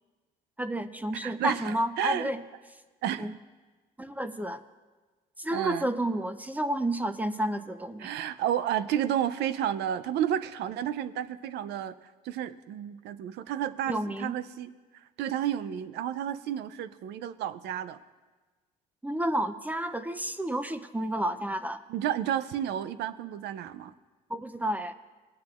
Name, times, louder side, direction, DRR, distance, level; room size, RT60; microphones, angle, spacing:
voice 1, 0.6-2.4 3.2-3.3 4.0-4.6 5.4-8.1 13.9-14.4 19.0-21.8 24.3-24.9, right 1 dB, 10° right, 11 dB, 0.5 m, -31 dB
voice 2, 1.2-2.3 3.0-3.3 5.5-5.9 8.0-12.0 12.2-14.7 15.2-18.0 21.9-23.9, right 10 dB, 80° right, 14 dB, 0.5 m, -31 dB
19.5 x 9.5 x 2.4 m, 1.3 s
cardioid pair, 85°, 17 cm